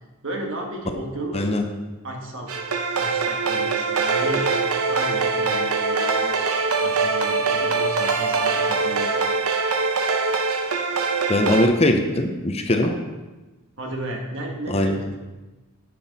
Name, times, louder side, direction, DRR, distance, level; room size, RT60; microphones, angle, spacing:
voice 1, 0.2-1.5 2.0-2.5 3.0-4.5 4.9-9.1 12.8-12.9 13.8-15.2, right 1 dB, 60° right, 1 dB, 1.5 m, -33 dB
sound 1, 2.5-11.7, right 4 dB, 80° right, 0.8 m, -23 dB
voice 2, 11.3-12.9 14.7-15.0, left 1 dB, 30° left, 5 dB, 0.7 m, -20 dB
9.9 x 6.1 x 4.1 m, 1.2 s
head